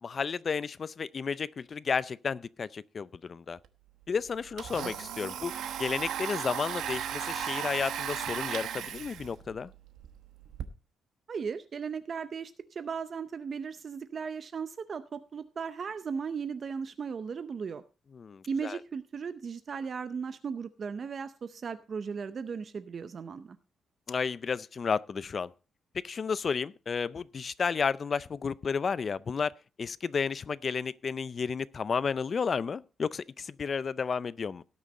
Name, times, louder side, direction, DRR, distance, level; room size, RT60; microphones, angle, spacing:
voice 1, 0.0-3.6 4.1-9.7 18.1-18.8 24.1-25.5 25.9-34.6, left 5 dB, 40° left, 0.4 m, -32 dB
Domestic sounds home sounds, 3.6-3.7 4.0-10.6, right 9 dB, 85° right, 1.0 m, -36 dB
voice 2, 11.3-17.8 18.5-23.6, right 6 dB, 45° right, 0.6 m, -36 dB
17.5 x 6.3 x 4.2 m
cardioid pair, 130°, 0 cm